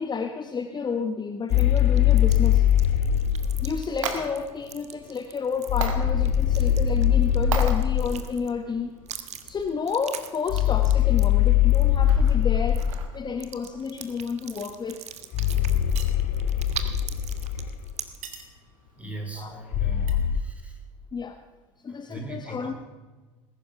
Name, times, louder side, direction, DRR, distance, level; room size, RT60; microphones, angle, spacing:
voice 1, 0.0-2.7 3.6-8.9 9.4-12.8 13.1-15.1 19.4-19.6 19.9-20.2 21.1-21.4 21.8-22.7, left 5 dB, 25° left, 7 dB, 1.1 m, -31 dB
sound 1, 1.5-3.8 5.7-8.2 10.5-13.1 15.3-17.9 19.7-20.4, left 10 dB, 50° left, 1.0 m, -22 dB
sound 2, 1.5-8.6 9.1-12.4 12.7-13.0 13.4-18.4, right 9 dB, 40° right, 1.5 m, -41 dB
sound 3, 3.4-20.1, right 6 dB, 75° right, 2.0 m, -41 dB
voice 2, 19.0-20.8 21.9-22.7, right 2 dB, 10° right, 2 dB, 4.7 m, -39 dB
20.0 x 11.0 x 5.8 m, 1.3 s
figure-of-eight pair, 70°, 17 cm